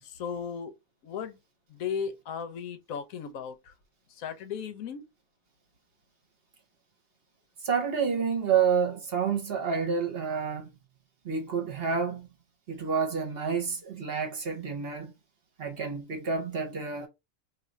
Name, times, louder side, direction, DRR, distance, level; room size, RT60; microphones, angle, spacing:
voice 1, 0.0-0.7 1.0-1.4 1.7-3.7 4.1-5.0, left 7 dB, 90° left, 1.1 m, -36 dB
voice 2, 7.6-10.7 11.2-12.3 12.7-15.1 15.6-17.1, right 6 dB, 50° right, 1.0 m, -29 dB
2.6 x 2.5 x 4.2 m
omnidirectional pair, 1.4 m